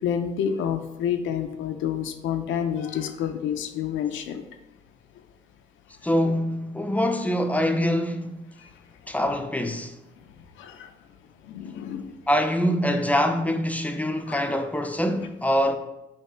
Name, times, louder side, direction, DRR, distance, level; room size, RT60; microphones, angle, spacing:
voice 1, 0.0-4.5 8.6-8.7 10.5-10.9 11.4-12.1 14.3-14.4, left 8 dB, 80° left, 0.5 m, -29 dB
voice 2, 6.0-8.4 9.1-10.0 12.3-15.8, equal, 5° left, 0.4 m, -24 dB
5.5 x 2.8 x 3.3 m
cardioid pair, 90°, 20 cm